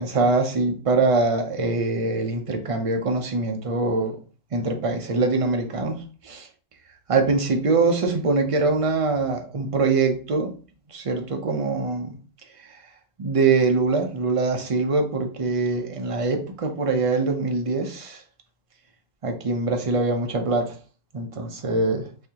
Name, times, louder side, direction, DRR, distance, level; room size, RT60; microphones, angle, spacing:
voice 1, 0.0-4.2 4.5-6.0 6.2-6.5 7.1-10.5 10.9-12.2 13.2-18.2 19.2-20.7 21.1-22.1, right 3 dB, 45° right, 4 dB, 0.4 m, -23 dB
4.2 x 2.7 x 2.8 m, 0.38 s
omnidirectional pair, 1.3 m